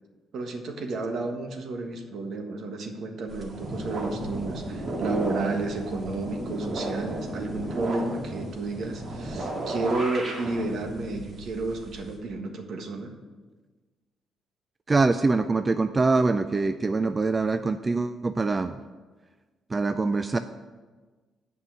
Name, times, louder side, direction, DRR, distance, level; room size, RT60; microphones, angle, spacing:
voice 1, 0.3-13.1, right 3 dB, 65° right, 4 dB, 1.4 m, -31 dB
sound 1, 3.3-12.1, right 1 dB, 45° right, 2.1 m, -34 dB
voice 2, 14.9-18.8 19.7-20.4, right 3 dB, 25° right, 10 dB, 0.4 m, -24 dB
8.1 x 5.6 x 7.6 m, 1.3 s
cardioid pair, 90°, 0 cm